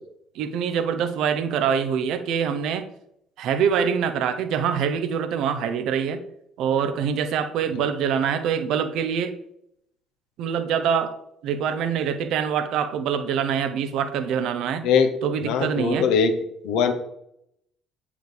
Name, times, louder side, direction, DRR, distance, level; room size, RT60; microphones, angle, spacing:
voice 1, 0.3-2.9 3.4-6.2 6.6-9.3 10.4-11.1 11.4-14.9 15.2-16.1, right 7 dB, 60° right, 9 dB, 0.9 m, -24 dB
voice 2, 15.4-16.3 16.6-16.9, left 6 dB, 65° left, 7 dB, 1.0 m, -20 dB
9.0 x 5.2 x 5.1 m, 0.75 s
figure-of-eight pair, 55°, 0 cm